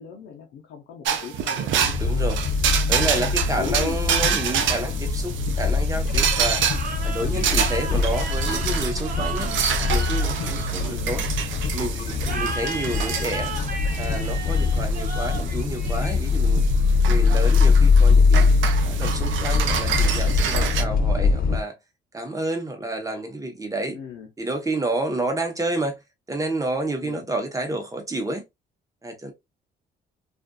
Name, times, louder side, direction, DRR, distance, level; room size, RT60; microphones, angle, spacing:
voice 1, 0.0-2.2 3.1-3.3 3.6-4.0 7.2-7.5 9.4-9.6 10.8-11.1 12.2-12.5 23.9-24.3 27.0-27.2, left 7 dB, 85° left, 0.7 m, -38 dB
sound 1, 1.0-20.8, right 8 dB, 75° right, 0.5 m, -28 dB
sound 2, 1.8-21.6, left 4 dB, 45° left, 0.4 m, -22 dB
voice 2, 2.0-2.4 2.9-6.6 7.0-9.5 9.9-11.2 11.7-13.5 14.0-16.6 17.1-18.5 18.9-21.7 22.1-24.0 24.4-26.0 26.3-28.4 29.0-29.3, right 2 dB, 15° right, 0.8 m, -29 dB
sound 3, 6.6-11.4 12.2-16.6, right 3 dB, 45° right, 0.9 m, -35 dB
2.5 x 2.4 x 2.2 m
cardioid pair, 90°, 20 cm